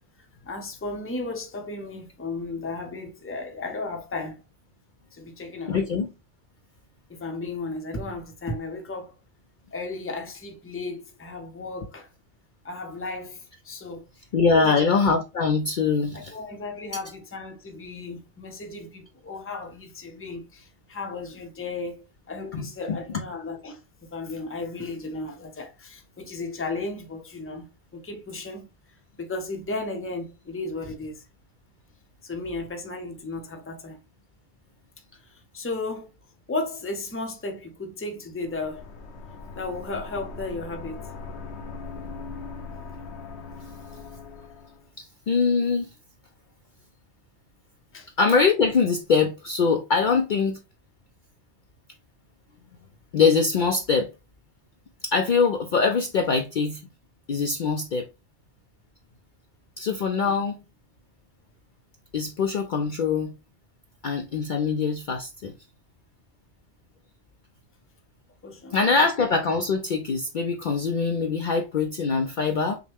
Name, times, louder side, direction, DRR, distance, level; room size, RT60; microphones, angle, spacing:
voice 1, 0.5-4.4 5.1-5.9 7.1-9.1 9.7-12.1 12.6-14.0 14.5-14.9 16.1-27.6 27.9-28.7 29.2-31.2 32.2-34.0 35.3-36.1 36.5-38.9 39.5-41.0 47.9-48.1 68.4-68.8, left 3 dB, 15° left, 0.6 m, -34 dB
voice 2, 5.7-6.1 14.3-16.3 22.5-23.0 45.0-45.9 48.2-50.6 53.1-54.1 55.0-56.8 57.3-58.1 59.8-60.6 62.1-63.3 64.0-65.5 68.7-72.8, left 4 dB, 55° left, 0.6 m, -23 dB
sound 1, 38.4-44.9, left 4 dB, 75° left, 1.1 m, -40 dB
5.8 x 2.1 x 3.4 m
omnidirectional pair, 1.2 m